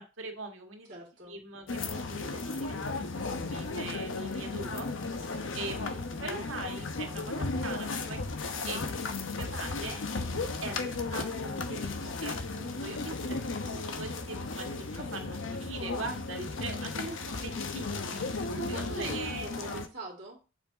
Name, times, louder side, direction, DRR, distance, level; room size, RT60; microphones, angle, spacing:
voice 1, 0.0-0.9 1.2-3.0 3.4-4.9 5.5-8.2 8.6-8.8 9.3-10.0 10.6-10.8 11.1-18.3 18.7-19.5, right 3 dB, 90° right, 4 dB, 1.7 m, -41 dB
voice 2, 0.9-1.3 10.4-11.0 14.2-14.3 18.5-20.4, right 2 dB, 50° right, -1 dB, 2.2 m, -43 dB
sound 1, 1.7-19.9, left 3 dB, 75° left, 0.9 m, -35 dB
7.2 x 5.5 x 3.9 m, 0.31 s
head